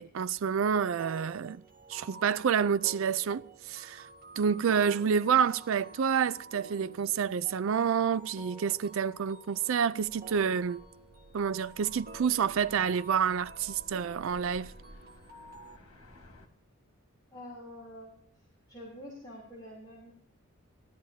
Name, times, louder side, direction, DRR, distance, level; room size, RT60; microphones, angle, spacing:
voice 1, 0.0-1.6 1.9-4.1 4.4-10.8 11.3-14.7, right 7 dB, 65° right, 0.4 m, -28 dB
sound 1, 1.0-15.8, right 2 dB, 40° right, 1.4 m, -50 dB
sound 2, 10.0-16.5, equal, 85° left, 1.9 m, -55 dB
voice 2, 17.3-18.1 18.7-20.1, left 1 dB, 20° left, 3.3 m, -46 dB
18.0 x 12.0 x 2.8 m
head